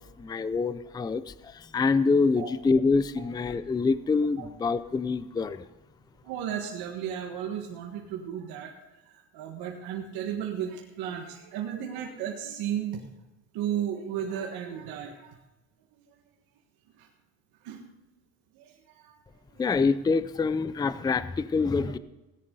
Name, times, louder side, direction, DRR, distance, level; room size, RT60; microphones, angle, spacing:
voice 1, 0.0-5.7 19.6-22.0, left 4 dB, 10° left, 15 dB, 0.4 m, -26 dB
voice 2, 6.2-8.7 9.0-13.1 13.5-15.4 15.9-16.2 17.0-17.1 17.6-17.8 18.5-19.2 19.5-19.6, right 9 dB, 80° right, 1 dB, 1.7 m, -34 dB
17.5 x 10.5 x 3.9 m, 1.0 s
cardioid pair, 120°, 37 cm